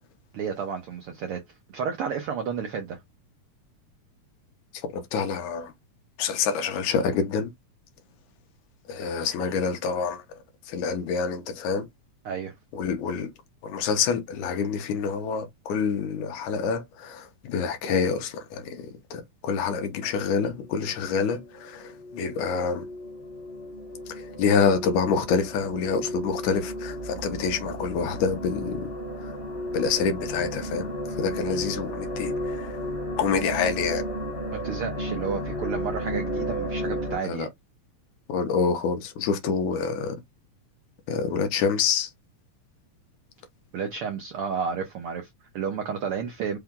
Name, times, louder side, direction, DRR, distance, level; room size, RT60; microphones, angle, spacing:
voice 1, 0.3-1.4 1.7-3.0 12.2-12.5 34.5-37.5 43.7-46.6, right 6 dB, 75° right, 1.2 m, -31 dB
voice 2, 4.7-5.7 6.2-7.5 8.9-10.2 10.7-11.9 12.7-13.3 13.6-22.9 24.1-28.9 29.2-29.3 29.7-32.7 33.2-34.0 37.2-37.5 38.3-40.2 41.1-42.1, left 6 dB, 75° left, 2.3 m, -27 dB
sound 1, 20.6-37.2, equal, 40° left, 0.9 m, -34 dB
5.7 x 2.3 x 3.7 m
omnidirectional pair, 3.5 m